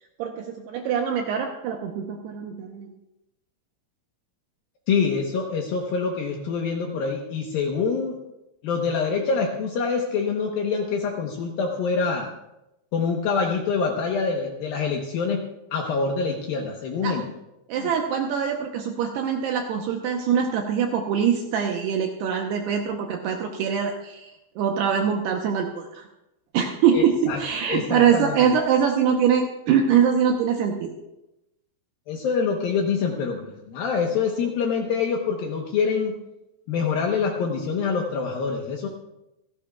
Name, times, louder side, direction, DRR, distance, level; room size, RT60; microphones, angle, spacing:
voice 1, 0.2-2.9 17.0-17.2 17.7-26.1 26.5-30.9, right 7 dB, 85° right, 3 dB, 2.3 m, -23 dB
voice 2, 4.9-8.2 8.6-12.3 12.9-15.4 15.7-17.3 17.8-17.9 26.9-27.4 27.7-28.4 32.1-36.2 36.7-38.9, left 5 dB, 85° left, 1 dB, 2.0 m, -25 dB
28.0 x 11.0 x 2.3 m, 0.91 s
omnidirectional pair, 5.8 m